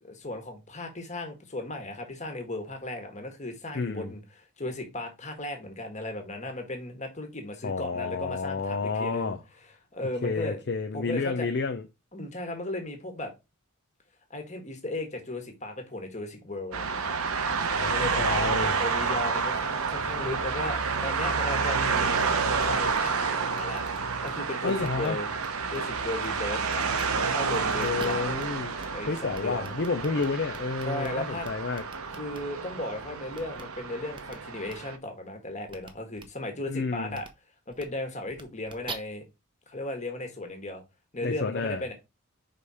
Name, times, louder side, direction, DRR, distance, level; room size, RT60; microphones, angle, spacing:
voice 1, 0.0-9.4 9.9-10.6 10.9-11.5 12.1-13.3 14.3-17.1 17.4-18.2 18.8-22.2 22.6-23.8 24.2-25.3 25.7-26.8 27.1-28.4 28.9-29.7 30.8-31.5 32.1-37.3 37.7-39.2 39.7-40.8 41.1-41.9, left 2 dB, 30° left, 1.6 m, -36 dB
voice 2, 3.7-4.1 7.6-9.4 10.2-11.8 17.8-18.8 24.6-25.2 27.8-28.8 29.1-31.8 36.7-37.2 41.2-41.8, left 4 dB, 50° left, 0.6 m, -30 dB
sound 1, 16.7-35.0, right 5 dB, 75° right, 0.9 m, -29 dB
sound 2, 22.2-22.3 22.6-22.7 22.9-23.1 23.5-24.3 24.6-25.1 25.4-25.8 26.2-26.3 26.7-27.1 27.5-28.4 28.8-28.9 29.1-31.1 31.4-32.4 33.3-33.6 34.1-34.3 34.7-34.8 35.7-35.9 36.2-36.3 37.1-37.3 37.7-37.8 38.3-38.9, right 4 dB, 20° right, 0.8 m, -44 dB
5.1 x 4.2 x 4.8 m
head